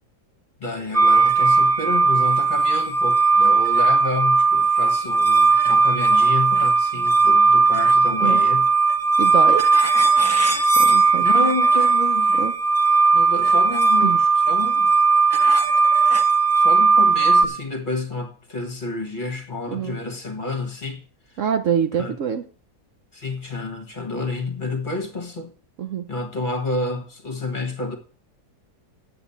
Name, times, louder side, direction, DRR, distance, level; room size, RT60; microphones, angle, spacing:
voice 1, 0.6-8.7 11.2-12.5 13.1-14.9 16.6-21.0 22.0-22.1 23.1-25.5 26.1-28.0, left 2 dB, 30° left, 1.6 m, -29 dB
sound 1, 0.9-17.4, right 4 dB, 10° right, 1.0 m, -17 dB
voice 2, 9.2-9.7 10.8-11.3 12.4-12.5 14.0-14.2 19.7-20.0 21.4-22.4 25.8-26.1, right 8 dB, 60° right, 1.0 m, -25 dB
9.3 x 8.0 x 7.1 m
omnidirectional pair, 1.7 m